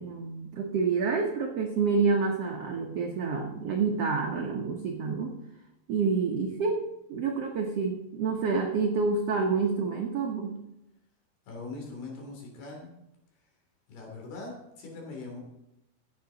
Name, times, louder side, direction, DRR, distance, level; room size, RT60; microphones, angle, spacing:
voice 1, 0.0-5.3 5.9-10.6, right 4 dB, 85° right, 1 dB, 1.3 m, -28 dB
voice 2, 11.5-12.9 13.9-15.4, left 3 dB, 85° left, 0 dB, 5.0 m, -41 dB
16.0 x 8.7 x 3.9 m, 0.88 s
omnidirectional pair, 4.4 m